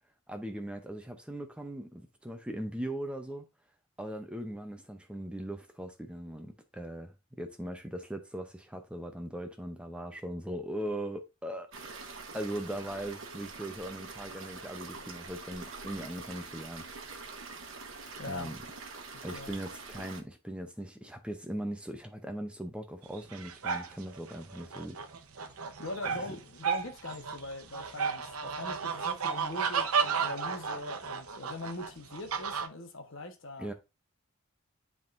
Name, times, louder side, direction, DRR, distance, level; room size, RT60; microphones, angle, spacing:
voice 1, 0.3-3.4 4.0-11.7 12.3-17.2 18.2-18.6 19.2-25.0 26.3-26.4 33.6-33.7, right 1 dB, 5° right, 0.6 m, -39 dB
sound 1, 11.7-20.2, right 4 dB, 60° right, 1.0 m, -45 dB
voice 2, 18.2-18.5 19.1-19.5 25.8-33.7, left 2 dB, 60° left, 1.2 m, -42 dB
sound 2, 23.1-32.7, right 6 dB, 90° right, 0.9 m, -33 dB
10.0 x 3.6 x 2.6 m
head